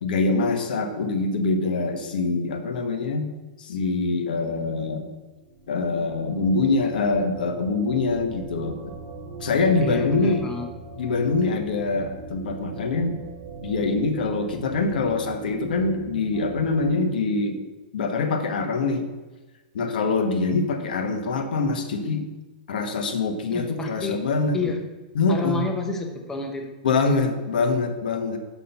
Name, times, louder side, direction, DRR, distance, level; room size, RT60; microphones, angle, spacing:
voice 1, 0.0-3.2 3.6-5.1 5.7-8.8 9.4-10.4 11.0-13.2 13.6-17.6 17.9-19.1 19.7-22.3 22.7-24.6 25.1-25.6 26.8-28.4, left 3 dB, 80° left, 6 dB, 1.2 m, -24 dB
sound 1, 5.3-16.9, right 4 dB, 20° right, 2.2 m, -39 dB
voice 2, 9.8-10.7 23.5-24.2 24.5-24.8 25.3-26.7, left 3 dB, 10° left, 3 dB, 0.7 m, -29 dB
6.1 x 5.6 x 5.8 m, 1.2 s
supercardioid pair, 155°, 5 cm